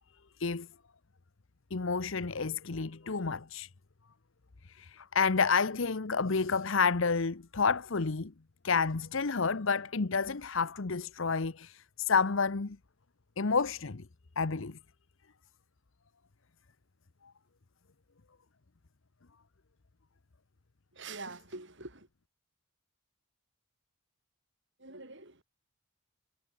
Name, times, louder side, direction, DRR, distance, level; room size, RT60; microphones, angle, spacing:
voice 1, 1.7-3.7 4.7-8.3 8.6-12.8 13.4-14.0 14.4-14.8, left 5 dB, 65° left, 0.9 m, -30 dB
voice 2, 20.9-22.1 24.8-25.4, right 3 dB, 55° right, 7.3 m, -45 dB
head